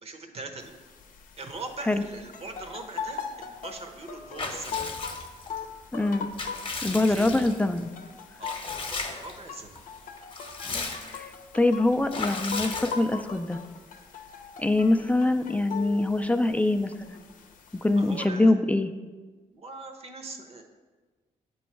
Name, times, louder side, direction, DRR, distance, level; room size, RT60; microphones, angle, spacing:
voice 1, 0.0-0.8 1.4-4.9 7.0-7.3 8.4-9.8 18.0-18.5 19.5-20.6, right 3 dB, 50° right, 5 dB, 0.9 m, -41 dB
sound 1, 0.6-18.3, left 6 dB, 80° left, 0.7 m, -41 dB
Water / Bathtub (filling or washing) / Liquid, 4.4-5.6 6.1-7.8 8.4-9.4 9.7-9.8 10.2-11.3 12.1-13.4, left 3 dB, 40° left, 0.9 m, -36 dB
voice 2, 5.9-6.3 6.8-7.9 11.1-13.6 14.6-17.2 17.8-18.9, left 2 dB, 10° left, 8 dB, 0.4 m, -24 dB
7.7 x 3.1 x 4.5 m, 1.3 s
cardioid pair, 65°, 14 cm